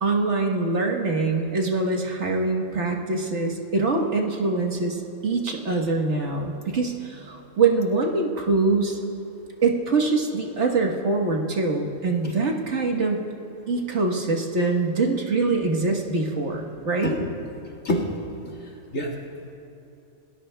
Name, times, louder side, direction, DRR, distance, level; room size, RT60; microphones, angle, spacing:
voice 1, 0.0-5.0 5.2-9.0 9.6-13.3 13.7-17.2, right 3 dB, 60° right, 1 dB, 1.6 m, -24 dB
voice 2, 17.0-18.1 18.9-19.1, left 1 dB, 70° left, 0 dB, 2.3 m, -28 dB
28.0 x 18.5 x 2.3 m, 2.9 s
omnidirectional pair, 1.4 m